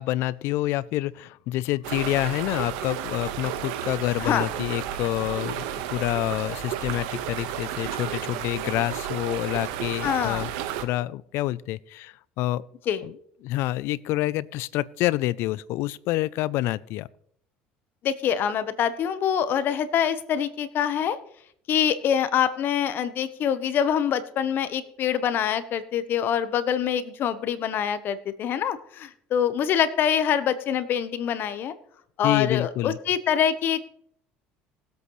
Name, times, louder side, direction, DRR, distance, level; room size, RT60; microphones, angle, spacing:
voice 1, 0.0-5.6 5.9-10.5 10.8-12.7 13.0-13.1 13.4-17.1 32.2-33.0, left 16 dB, 70° left, 21 dB, 0.5 m, -27 dB
sound 1, 1.8-10.8, right 10 dB, 80° right, 1.3 m, -32 dB
voice 2, 10.0-10.5 12.9-13.0 18.0-21.2 21.7-31.7 32.2-33.8, left 9 dB, 55° left, 13 dB, 1.0 m, -25 dB
20.5 x 8.1 x 3.2 m, 0.67 s
supercardioid pair, 95°, 4 cm